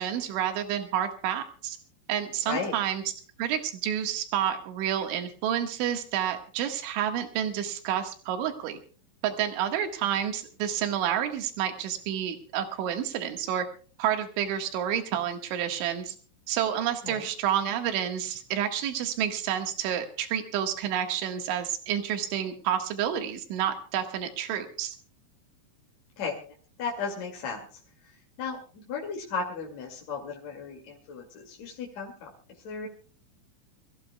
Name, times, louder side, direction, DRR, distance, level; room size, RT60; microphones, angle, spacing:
voice 1, 0.0-1.8 2.1-3.0 3.4-8.8 9.2-13.7 14.0-16.2 16.5-25.0, right 10 dB, 75° right, 6 dB, 3.9 m, -29 dB
voice 2, 26.8-32.3 32.6-32.9, left 5 dB, 45° left, -1 dB, 2.8 m, -35 dB
26.5 x 14.5 x 2.3 m, 0.39 s
omnidirectional pair, 5.6 m